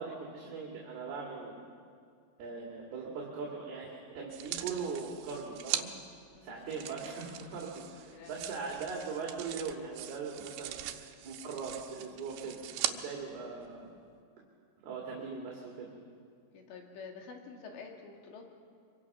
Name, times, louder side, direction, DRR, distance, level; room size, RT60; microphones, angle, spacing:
voice 1, 0.0-1.6 2.4-5.9 6.4-10.8 11.2-12.6 12.8-13.9 14.8-15.9, right 5 dB, 65° right, -2 dB, 4.3 m, -40 dB
sound 1, 4.3-5.9 6.7-13.0 13.6-13.7, right 13 dB, 90° right, 3.2 m, -40 dB
voice 2, 8.1-8.5 16.5-18.4, left 5 dB, 90° left, 1 dB, 4.6 m, -48 dB
25.0 x 24.0 x 6.0 m, 2.2 s
omnidirectional pair, 4.9 m